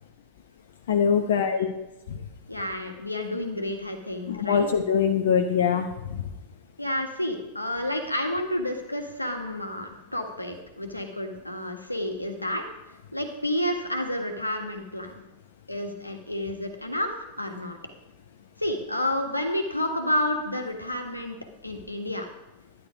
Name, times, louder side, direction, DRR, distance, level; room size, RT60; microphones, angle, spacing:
voice 1, 0.9-1.7 2.1-2.2 4.3-6.2, left 7 dB, 60° left, 5 dB, 0.9 m, -23 dB
voice 2, 2.5-4.7 6.8-12.6 13.1-15.1 15.7-17.1 17.4-17.8 18.6-21.4 21.6-22.3, left 1 dB, 85° left, 4 dB, 1.6 m, -30 dB
11.5 x 11.0 x 5.0 m, 0.97 s
figure-of-eight pair, 90°, 0 cm